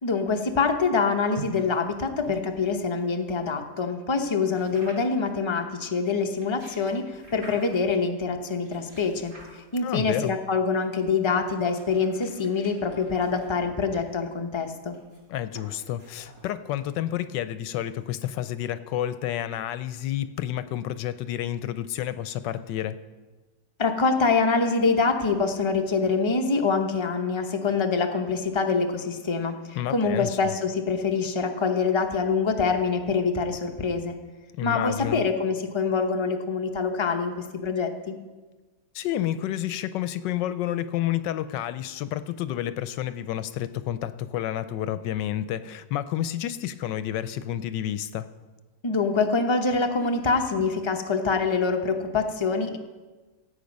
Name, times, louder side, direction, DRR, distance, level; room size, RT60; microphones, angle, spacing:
voice 1, 0.0-9.3 9.7-14.9 23.8-34.2 34.6-38.2 48.8-52.8, left 4 dB, 40° left, 4 dB, 0.4 m, -25 dB
sound 1, 1.3-3.5 4.5-5.3 6.2-7.9 8.6-10.0 10.8-17.2, right 1 dB, 60° right, 4.7 m, -48 dB
voice 2, 9.8-10.4 15.3-23.0 29.8-30.5 34.6-35.3 38.9-48.3, left 12 dB, 80° left, 13 dB, 1.2 m, -30 dB
15.5 x 8.3 x 5.3 m, 1.3 s
omnidirectional pair, 2.0 m